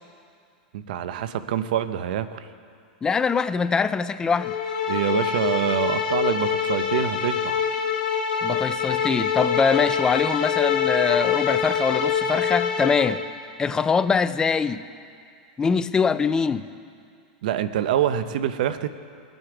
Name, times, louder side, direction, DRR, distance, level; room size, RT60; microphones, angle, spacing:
voice 1, 0.7-2.5 4.9-7.6 17.4-18.9, right 10 dB, 70° right, 12 dB, 0.7 m, -25 dB
voice 2, 3.0-4.6 8.4-13.2 13.6-14.9 15.6-16.7, left 5 dB, 15° left, 13 dB, 0.3 m, -23 dB
sound 1, 4.4-13.2, left 7 dB, 70° left, 2.6 m, -25 dB
21.0 x 7.9 x 4.9 m, 2.3 s
supercardioid pair, 135°, 5 cm